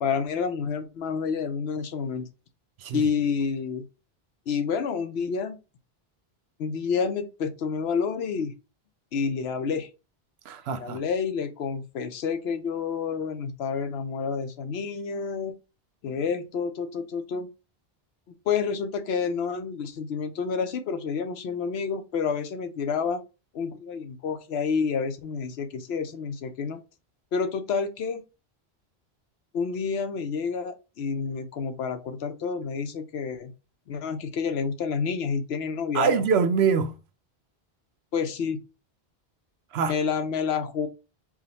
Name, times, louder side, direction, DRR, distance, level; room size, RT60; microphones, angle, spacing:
voice 1, 0.0-2.3 2.9-3.9 4.5-5.6 6.6-8.5 9.1-9.9 10.8-15.5 16.0-17.5 18.5-23.2 23.5-26.8 27.3-28.2 29.5-33.5 33.9-36.1 38.1-38.6 39.9-40.9, left 6 dB, 85° left, 0.9 m, -29 dB
voice 2, 10.5-11.0 35.9-36.9 39.7-39.9, right 6 dB, 90° right, 0.9 m, -24 dB
4.8 x 2.2 x 4.0 m
omnidirectional pair, 1.0 m